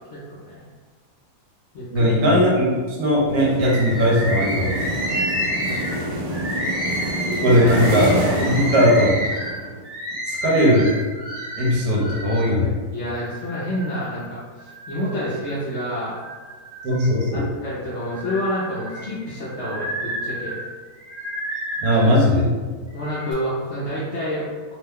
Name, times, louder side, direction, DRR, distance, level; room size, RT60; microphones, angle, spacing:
voice 1, 0.1-0.6 1.7-2.1 5.6-6.5 12.9-16.2 17.3-20.5 22.9-24.7, equal, 60° left, -8 dB, 0.7 m, -29 dB
voice 2, 1.9-4.8 7.2-8.2 8.5-9.2 10.3-10.9 11.6-12.7 16.8-17.5 21.8-22.5, equal, 70° right, -4 dB, 1.2 m, -18 dB
sound 1, 3.3-9.8, right 1 dB, 90° right, 1.2 m, -27 dB
Bird, 3.6-12.5 13.1-14.1 14.6-15.6 16.0-17.4 17.9-22.2 22.9-23.3, equal, 40° right, 0.8 m, -30 dB
2.9 x 2.1 x 3.5 m, 1.4 s
omnidirectional pair, 1.7 m